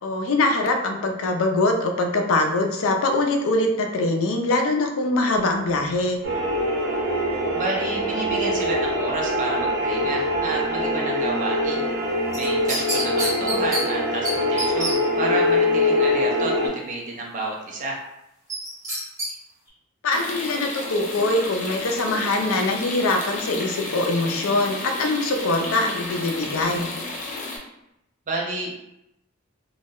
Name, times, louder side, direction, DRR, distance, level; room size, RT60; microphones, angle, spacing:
voice 1, 0.0-6.2 20.0-26.9, left 2 dB, 85° left, 4 dB, 0.4 m, -23 dB
sound 1, 6.2-16.7, left 1 dB, 70° right, 0.8 m, -23 dB
voice 2, 7.5-11.9 12.3-18.0 28.3-28.7, right 2 dB, 40° right, -2 dB, 0.6 m, -30 dB
sound 2, 12.3-13.8 14.2-14.3 14.6-14.9 18.5-19.3 19.7-19.8, right 1 dB, 15° right, 0.9 m, -27 dB
sound 3, 20.1-27.6, left 2 dB, 40° left, 0.5 m, -32 dB
2.2 x 2.0 x 3.5 m, 0.85 s
head